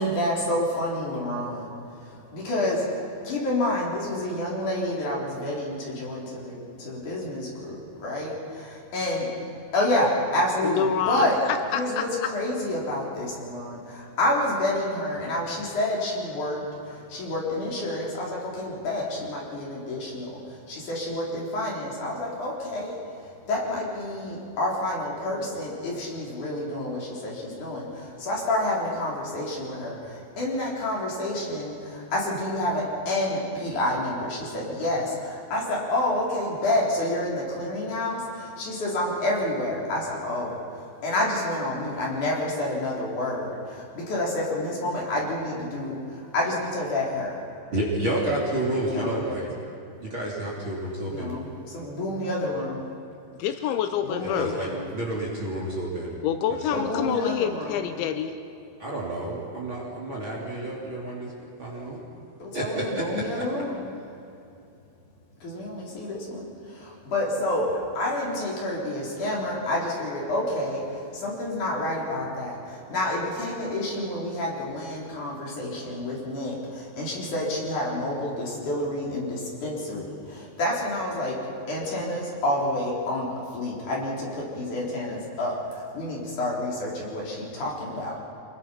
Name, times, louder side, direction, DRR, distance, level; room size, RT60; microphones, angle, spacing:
voice 1, 0.0-1.7 2.1-8.7 8.9-9.3 9.7-11.4 11.7-22.9 23.5-47.4 48.9-49.2 51.1-52.8 54.0-54.8 56.7-57.8 62.4-63.9 65.4-81.4 81.7-88.2, left 1 dB, 45° left, -4 dB, 5.1 m, -29 dB
voice 2, 10.6-12.3 53.4-54.5 56.2-58.4, left 9 dB, 85° left, 8 dB, 3.1 m, -27 dB
voice 3, 47.7-49.5 50.0-51.3 54.2-56.2 56.6-56.7 58.8-61.3 61.6-62.0 62.5-63.4, right 1 dB, 30° right, -3 dB, 3.0 m, -30 dB
26.0 x 21.5 x 5.8 m, 2.6 s
omnidirectional pair, 5.4 m